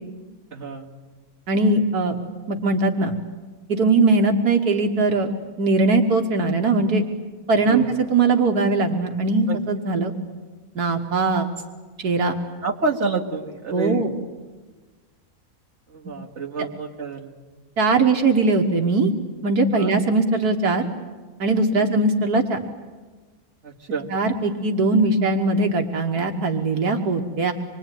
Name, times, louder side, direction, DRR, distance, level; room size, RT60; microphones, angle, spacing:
voice 1, 0.5-0.9 7.6-7.9 9.5-9.6 12.6-14.1 15.9-17.3 19.7-19.9 21.8-21.9 23.6-24.1, right 4 dB, 45° right, -1 dB, 2.4 m, -28 dB
voice 2, 1.5-2.2 2.5-3.2 3.7-7.0 7.5-7.8 8.1-10.1 10.8-11.5 12.0-12.3 13.7-14.1 17.8-19.1 19.4-20.9 21.4-22.6 24.1-27.5, right 3 dB, 75° right, 4 dB, 1.9 m, -20 dB
26.0 x 22.5 x 9.2 m, 1.3 s
omnidirectional pair, 1.6 m